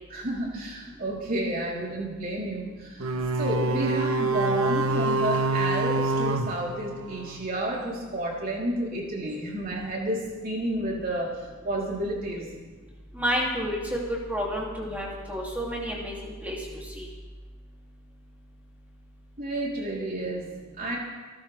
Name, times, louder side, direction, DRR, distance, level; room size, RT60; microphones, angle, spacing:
voice 1, 0.1-3.1 3.4-12.5 19.4-21.0, right 1 dB, 45° right, -3 dB, 3.8 m, -31 dB
sound 1, 3.0-7.5, right 2 dB, 75° right, 1.0 m, -26 dB
voice 2, 13.1-17.1, equal, 5° right, -4 dB, 2.8 m, -30 dB
28.5 x 13.0 x 3.5 m, 1.4 s
head